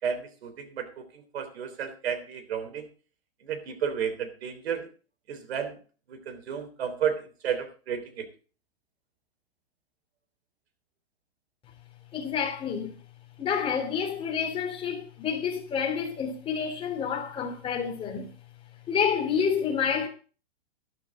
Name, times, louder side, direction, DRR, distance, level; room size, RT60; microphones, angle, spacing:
voice 1, 0.0-2.9 3.4-4.9 5.3-5.8 6.1-8.3, right 7 dB, 70° right, 3.5 m, -32 dB
voice 2, 12.1-13.0 13.4-18.3 18.9-20.1, left 7 dB, 15° left, 3.1 m, -29 dB
12.5 x 12.0 x 3.7 m
hypercardioid pair, 155°, 32 cm